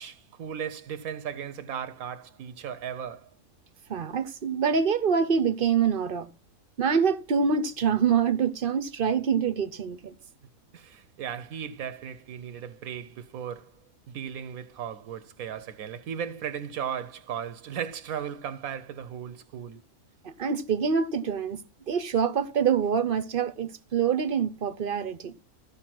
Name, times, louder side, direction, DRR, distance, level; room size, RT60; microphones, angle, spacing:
voice 1, 0.0-3.3 10.7-13.7 14.1-19.8, right 8 dB, 85° right, 1.2 m, -36 dB
voice 2, 3.9-6.3 6.8-10.2 20.4-21.6 21.9-25.3, right 6 dB, 50° right, 0.8 m, -25 dB
14.5 x 5.3 x 6.0 m
omnidirectional pair, 1.5 m